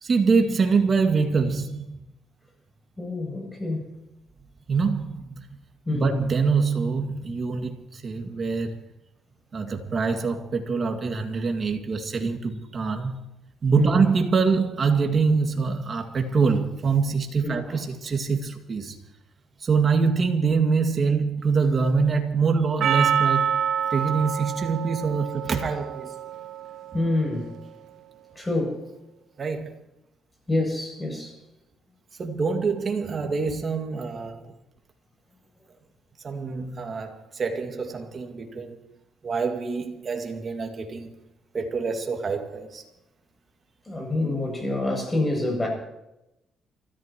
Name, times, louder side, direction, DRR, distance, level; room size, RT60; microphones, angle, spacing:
voice 1, 0.0-2.0 4.7-5.5 5.9-8.9 9.5-13.2 13.6-19.0 19.6-23.5 23.9-26.2 29.4-29.7 32.2-34.5 36.2-38.8 39.2-41.1 41.5-42.8, right 5 dB, 45° right, 4 dB, 2.2 m, -25 dB
voice 2, 3.0-3.9 5.9-6.1 13.8-14.0 17.4-17.6 26.9-27.5 28.4-28.8 30.5-31.3 43.9-45.7, left 2 dB, 20° left, 0 dB, 7.8 m, -26 dB
Percussion, 22.8-27.3, right 8 dB, 75° right, 0.6 m, -27 dB
29.0 x 14.5 x 3.1 m, 0.90 s
cardioid pair, 90°, 0 cm